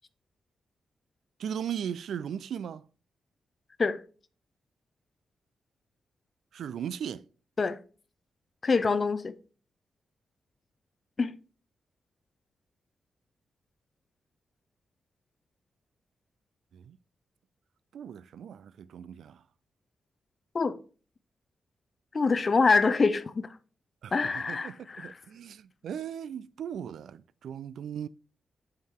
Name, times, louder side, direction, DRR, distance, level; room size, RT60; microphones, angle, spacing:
voice 1, 1.4-2.9 6.5-7.3 16.7-17.0 17.9-19.4 24.0-28.1, right 8 dB, 80° right, 0.3 m, -38 dB
voice 2, 8.6-9.3 11.2-11.4 20.5-20.8 22.1-23.5 24.1-25.2, left 4 dB, 30° left, 0.4 m, -25 dB
8.3 x 4.7 x 3.6 m
wide cardioid pair, 180°, 0 cm